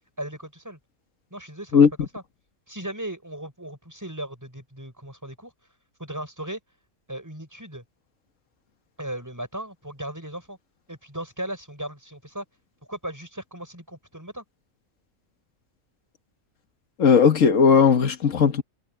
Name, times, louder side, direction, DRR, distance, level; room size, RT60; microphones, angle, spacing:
voice 1, 0.2-0.8 1.3-2.2 2.7-5.5 6.0-6.6 7.1-7.8 9.0-10.6 10.9-12.4 12.9-14.4, right 1 dB, 15° right, 6.4 m, -36 dB
voice 2, 17.0-18.6, left 6 dB, 85° left, 1.7 m, -17 dB
omnidirectional pair, 1.3 m